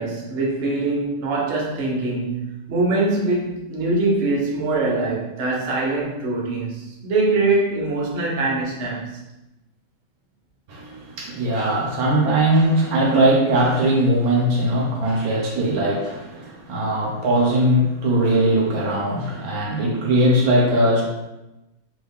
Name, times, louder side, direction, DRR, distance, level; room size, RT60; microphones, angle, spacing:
voice 1, 0.0-9.2, right 2 dB, 55° right, -3 dB, 0.8 m, -23 dB
voice 2, 10.7-21.0, right 1 dB, 80° right, -2 dB, 1.2 m, -20 dB
2.9 x 2.4 x 3.4 m, 0.96 s
omnidirectional pair, 1.5 m